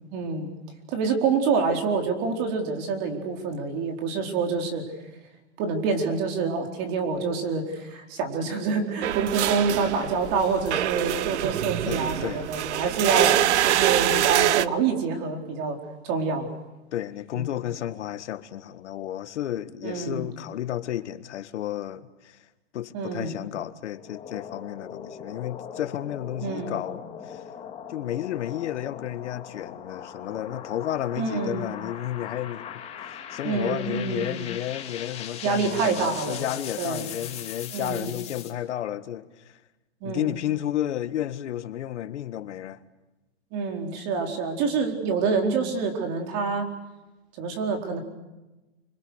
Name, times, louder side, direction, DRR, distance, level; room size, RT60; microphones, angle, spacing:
voice 1, 0.1-0.5 0.9-4.8 5.6-15.8 16.0-16.5 17.4-17.5 19.8-20.3 22.9-23.4 26.4-26.8 31.2-31.7 33.4-34.4 35.4-36.4 36.8-37.1 37.7-38.1 40.0-40.4 43.5-46.7 47.4-48.0, right 5 dB, 40° right, 4.5 m, -27 dB
sound 1, 9.0-14.7, right 12 dB, 75° right, 1.0 m, -24 dB
voice 2, 11.9-12.5 16.9-22.4 22.7-27.4 27.9-32.7 33.0-39.6 40.0-42.8, left 12 dB, 75° left, 1.8 m, -32 dB
sound 2, 23.9-38.5, left 8 dB, 20° left, 2.7 m, -40 dB
28.5 x 26.0 x 6.6 m
supercardioid pair, 160°, 35 cm